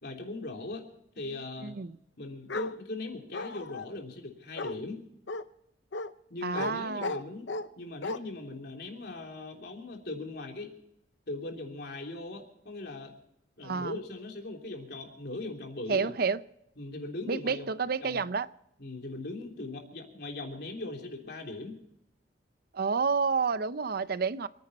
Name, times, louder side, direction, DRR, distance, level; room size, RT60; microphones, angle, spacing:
voice 1, 0.0-0.8 1.1-1.8 2.2-5.0 6.3-7.5 7.8-10.7 11.3-13.1 13.6-16.2 16.8-17.7 18.0-18.2 18.8-21.8, left 2 dB, 60° left, 2 dB, 3.3 m, -39 dB
voice 2, 1.6-2.0 6.4-7.1 13.6-13.9 15.9-16.4 17.3-18.5 22.7-24.5, right 5 dB, 55° right, 15 dB, 0.6 m, -29 dB
Bark, 2.5-2.7 3.3-3.9 4.6-4.8 5.3-5.4 5.9-6.1 6.5-6.7 7.0-7.7 8.0-8.2, left 3 dB, 75° left, 0.8 m, -34 dB
28.0 x 10.0 x 4.3 m, 0.78 s
head